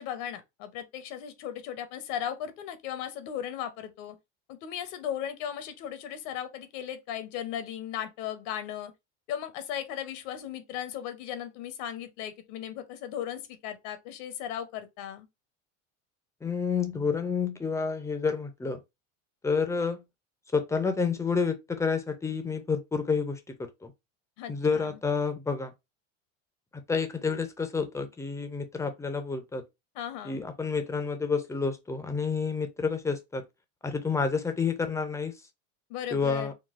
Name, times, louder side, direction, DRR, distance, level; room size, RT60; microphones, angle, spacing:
voice 1, 0.0-4.2 4.5-8.9 9.3-15.3 24.4-25.0 29.9-30.4 35.9-36.5, left 10 dB, 70° left, 0.8 m, -37 dB
voice 2, 16.4-18.8 19.4-20.0 20.5-23.9 24.5-25.7 26.9-29.6 30.2-33.4 33.8-35.3 36.1-36.5, left 5 dB, 10° left, 0.4 m, -29 dB
3.8 x 2.2 x 2.4 m
supercardioid pair, 115°, 38 cm